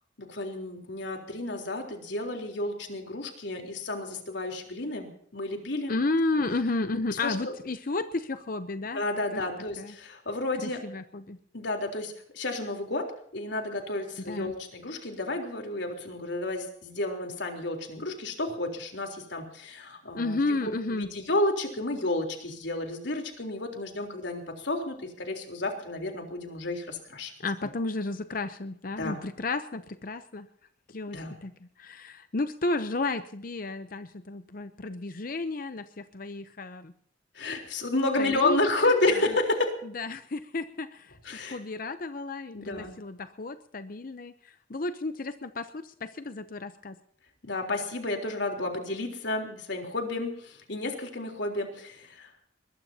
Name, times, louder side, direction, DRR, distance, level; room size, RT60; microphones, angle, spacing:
voice 1, 0.2-6.0 7.2-7.5 8.9-10.8 11.5-13.1 13.3-27.3 29.0-29.2 31.1-31.3 37.4-39.7 41.2-41.6 42.5-42.9 47.4-52.3, left 2 dB, 70° left, 3 dB, 3.7 m, -31 dB
voice 2, 5.9-9.0 9.3-9.4 9.8-9.9 10.6-11.4 14.3-14.5 20.1-21.1 27.4-30.5 30.9-31.5 31.8-36.9 38.2-38.9 39.9-41.2 41.5-44.3 44.7-47.0, left 2 dB, 45° left, 10 dB, 0.7 m, -32 dB
21.5 x 21.0 x 2.8 m, 0.63 s
head